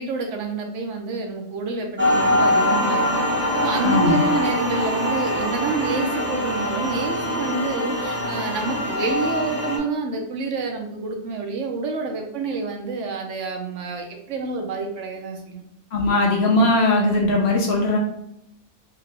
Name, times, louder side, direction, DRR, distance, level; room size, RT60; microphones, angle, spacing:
voice 1, 0.0-3.2 3.6-15.6, right 3 dB, 65° right, 2 dB, 0.9 m, -28 dB
sound 1, 2.0-9.8, left 1 dB, 10° right, 0.8 m, -23 dB
voice 2, 15.9-18.0, left 2 dB, 55° left, -1 dB, 0.9 m, -19 dB
3.6 x 2.8 x 3.3 m, 0.79 s
omnidirectional pair, 1.4 m